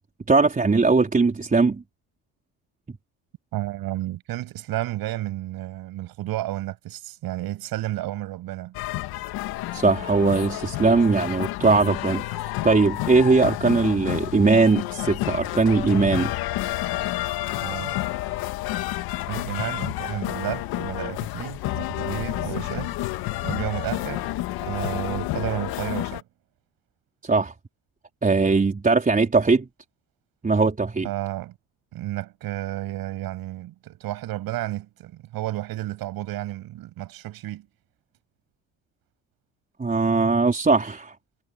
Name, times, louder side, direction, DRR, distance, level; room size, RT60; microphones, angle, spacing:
voice 1, 0.3-1.8 2.9-3.0 9.7-16.3 27.2-27.5 28.2-29.7 30.4-31.1 39.8-41.1, right 4 dB, 20° right, 4.4 m, -20 dB
voice 2, 3.5-8.8 17.6-17.9 19.3-22.9 23.4-24.3 24.6-26.2 31.0-31.6 31.9-37.7, right 15 dB, 75° right, 7.7 m, -32 dB
sound 1, 8.7-26.2, left 16 dB, 85° left, 2.2 m, -30 dB
cardioid pair, 105°, 36 cm